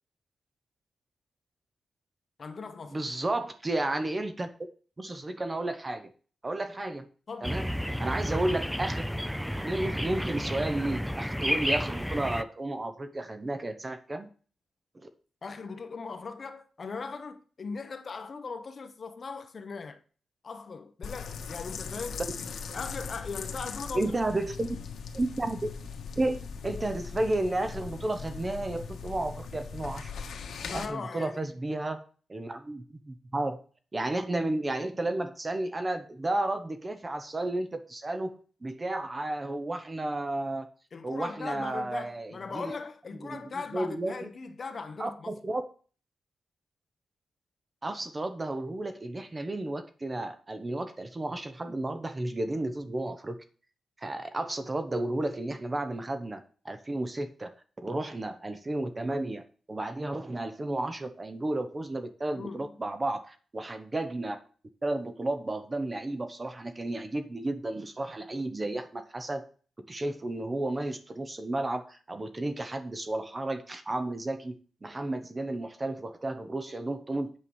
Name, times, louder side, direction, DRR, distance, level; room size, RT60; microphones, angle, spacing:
voice 1, 2.4-3.0 7.3-7.6 15.4-20.0 20.4-22.2 22.7-24.2 30.6-31.4 40.9-45.3 62.3-62.8, left 4 dB, 40° left, 1.0 m, -39 dB
voice 2, 2.9-4.5 5.0-6.1 6.4-7.1 7.4-7.7 8.0-9.0 9.6-14.3 15.0-15.1 23.9-24.8 25.1-25.7 26.2-30.1 30.7-32.0 32.3-33.6 33.9-40.7 41.0-42.7 43.2-43.4 43.7-44.3 45.0-45.6 47.8-53.4 54.0-57.5 57.8-64.4 64.8-69.4 69.8-77.3, right 2 dB, 20° right, 0.9 m, -32 dB
sound 1, 7.4-12.4, equal, ahead, 0.4 m, -31 dB
sound 2, 21.0-30.9, left 5 dB, 75° left, 1.5 m, -39 dB
8.5 x 4.8 x 7.1 m
wide cardioid pair, 155°, 0 cm